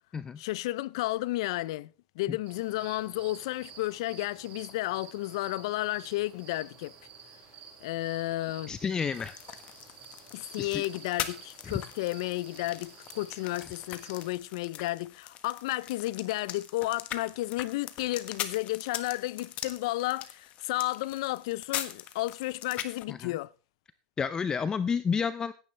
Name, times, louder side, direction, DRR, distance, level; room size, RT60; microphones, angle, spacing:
voice 1, 0.4-6.9 7.8-8.7 10.3-23.5, left 18 dB, 75° left, 0.5 m, -32 dB
sound 1, 2.5-14.4, right 6 dB, 45° right, 6.2 m, -51 dB
voice 2, 8.7-9.3 10.6-10.8 23.1-23.4 24.2-25.5, left 6 dB, 25° left, 0.5 m, -30 dB
sound 2, 9.1-23.0, left 11 dB, 45° left, 1.4 m, -41 dB
15.5 x 10.5 x 3.3 m
supercardioid pair, 110°, 3 cm